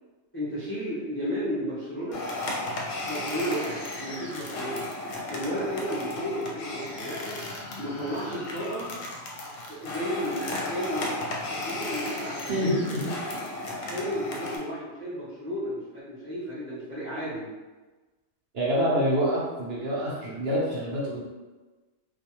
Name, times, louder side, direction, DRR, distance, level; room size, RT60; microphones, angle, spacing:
voice 1, 0.3-2.2 3.0-4.8 5.3-7.4 7.8-8.9 9.7-13.1 13.8-17.5, equal, 20° left, -10 dB, 0.4 m, -33 dB
sound 1, 2.1-14.6, left 2 dB, 70° left, 0.9 m, -35 dB
voice 2, 12.5-12.9 18.5-21.2, equal, 55° right, -7 dB, 0.8 m, -26 dB
2.4 x 2.3 x 2.8 m, 1.2 s
omnidirectional pair, 1.5 m